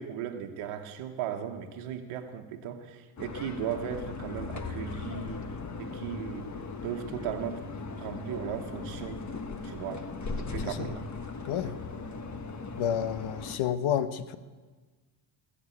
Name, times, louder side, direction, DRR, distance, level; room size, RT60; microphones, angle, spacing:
voice 1, 0.0-6.5 6.8-7.6 8.0-9.2 9.6-10.0 10.3-11.1, right 9 dB, 85° right, 4 dB, 1.3 m, -37 dB
sound 1, 3.2-13.6, left 4 dB, 35° left, 1.5 m, -38 dB
voice 2, 12.8-14.4, left 9 dB, 70° left, 13 dB, 1.1 m, -30 dB
19.0 x 7.3 x 8.5 m, 1.3 s
cardioid pair, 80°, 49 cm